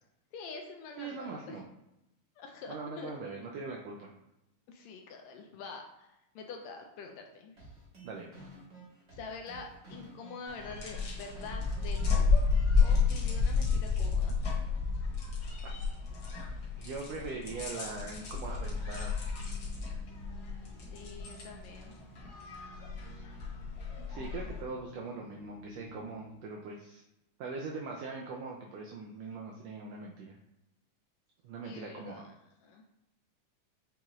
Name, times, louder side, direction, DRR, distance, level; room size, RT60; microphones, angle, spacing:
voice 1, 0.3-1.6 2.4-3.1 4.7-6.1 6.4-7.5 9.2-12.5 12.8-14.4 20.9-22.0 24.0-24.5 31.6-32.3 32.6-32.8, left 4 dB, 80° left, 2 dB, 1.7 m, -46 dB
voice 2, 1.0-1.7 2.7-4.1 8.0-8.3 16.8-19.1 23.1-23.2 24.1-27.0 27.4-30.4 31.4-32.3, right 4 dB, 85° right, 0 dB, 1.4 m, -41 dB
sound 1, 7.6-13.6, right 1 dB, 40° right, 0.9 m, -52 dB
sound 2, 10.5-24.6, left 4 dB, 55° left, 1.5 m, -31 dB
sound 3, 19.3-26.5, equal, 65° right, 0.7 m, -53 dB
7.1 x 2.4 x 3.0 m, 0.89 s
omnidirectional pair, 3.3 m